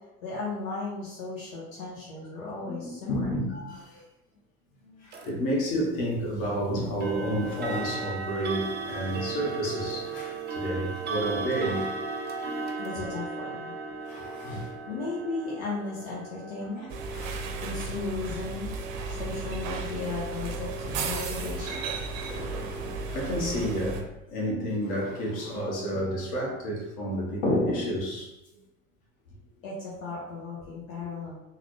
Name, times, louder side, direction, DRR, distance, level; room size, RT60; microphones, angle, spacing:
voice 1, 0.2-3.3 12.8-13.7 14.5-16.9 17.6-18.7 19.1-21.9 29.6-31.4, left 3 dB, 75° left, -6 dB, 1.0 m, -36 dB
voice 2, 2.4-4.0 4.8-12.0 12.4-12.8 14.0-14.7 16.8-17.4 19.1-19.2 20.9-21.1 22.1-28.3 31.0-31.1, equal, 55° left, -2 dB, 1.2 m, -31 dB
sound 1, 5.1-5.3 7.0-19.8, right 4 dB, 25° right, 0.5 m, -36 dB
sound 2, 16.9-24.0, right 3 dB, 70° right, 0.6 m, -34 dB
3.9 x 2.2 x 3.1 m, 0.91 s
hypercardioid pair, 70°, 41 cm